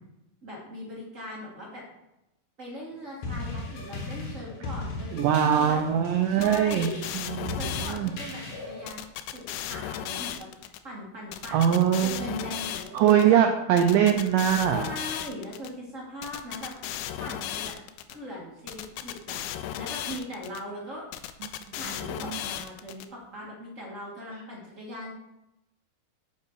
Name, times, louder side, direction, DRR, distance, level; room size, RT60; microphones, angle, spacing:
voice 1, 0.4-1.8 2.6-5.8 6.3-7.0 7.5-9.0 9.3-13.0 13.3-13.4 14.7-16.7 17.2-17.7 18.1-21.0 21.7-25.1, equal, 40° right, -4 dB, 1.1 m, -40 dB
sound 1, 3.2-8.9, left 2 dB, 60° left, 2.1 m, -37 dB
voice 2, 5.1-6.9 7.1-7.6 7.9-8.1 11.5-12.3 12.9-14.9 22.3-22.4, right 9 dB, 85° right, 4 dB, 1.9 m, -22 dB
sound 2, 6.4-8.3 8.9-10.8 11.3-13.2 13.8-15.7 16.2-18.2 18.7-20.6 21.1-23.1, left 11 dB, 85° left, 2.5 m, -35 dB
8.1 x 5.6 x 4.7 m, 0.92 s
omnidirectional pair, 4.5 m